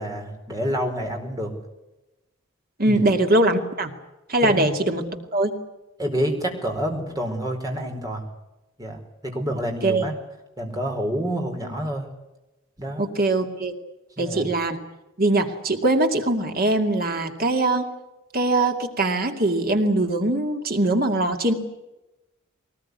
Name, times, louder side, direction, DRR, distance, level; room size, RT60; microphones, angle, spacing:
voice 1, 0.0-1.5 2.8-3.0 4.4-4.7 6.0-8.2 8.8-10.1 10.6-12.1 12.8-13.0 14.2-14.4, equal, 20° right, 2 dB, 4.6 m, -28 dB
voice 2, 2.8-3.9 4.3-5.0 5.3-5.5 9.8-10.0 13.0-13.7 14.2-14.8 15.2-17.9 18.3-21.5, right 2 dB, 45° right, 5 dB, 2.4 m, -22 dB
22.5 x 19.5 x 9.7 m, 0.99 s
head